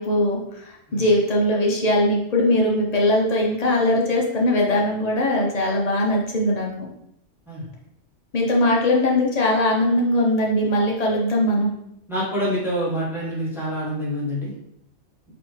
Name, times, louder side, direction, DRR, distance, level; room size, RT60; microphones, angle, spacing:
voice 1, 0.0-6.9 8.3-11.7, left 1 dB, 35° left, -2 dB, 0.8 m, -20 dB
voice 2, 12.1-14.5, equal, ahead, -7 dB, 1.3 m, -26 dB
4.1 x 2.8 x 3.2 m, 0.75 s
omnidirectional pair, 1.4 m